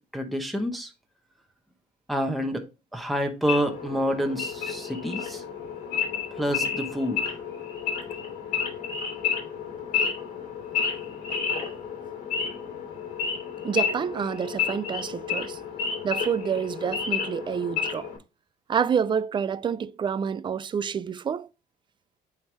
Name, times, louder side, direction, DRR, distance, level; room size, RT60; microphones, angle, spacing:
voice 1, 0.1-0.9 2.1-2.6 2.9-5.4 6.3-7.2, equal, ahead, 1.0 m, -28 dB
Wild animals / Idling, 3.4-18.2, left 7 dB, 50° left, 3.0 m, -31 dB
voice 2, 13.6-15.6 16.0-18.1 18.7-21.5, right 7 dB, 30° right, 0.4 m, -28 dB
9.0 x 3.6 x 3.2 m
cardioid pair, 110°, 17 cm